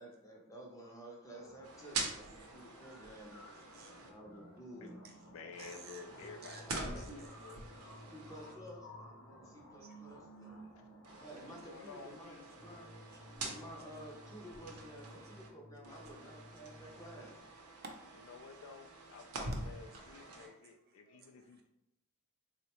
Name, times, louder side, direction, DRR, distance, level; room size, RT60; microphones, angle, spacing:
voice 1, 0.0-3.4 4.0-5.0 6.7-7.2 8.1-10.7 11.2-12.9 13.4-17.4, equal, 15° left, -1 dB, 0.5 m, -52 dB
sound 1, 1.2-15.2, equal, 85° left, 0.7 m, -57 dB
sound 2, 1.6-4.1 5.5-8.5 11.0-15.5 15.8-20.5, right 2 dB, 90° right, 0.6 m, -46 dB
voice 2, 2.0-3.0 3.4-4.1 5.0-5.2 5.6-6.0 6.4-7.1 8.0-8.1 9.8-10.0 11.1-11.2 14.8-15.1 15.8-16.0 17.8-18.8 19.5-20.7 21.0-21.2, right 3 dB, 45° right, 1 dB, 0.5 m, -56 dB
voice 3, 4.8-7.6 10.8-10.9 11.5-12.5 18.3-21.6, left 5 dB, 70° left, 7 dB, 0.3 m, -53 dB
sound 3, 6.1-9.6 12.5-17.6, equal, 40° left, 0.8 m, -57 dB
3.6 x 2.1 x 2.9 m, 0.85 s
head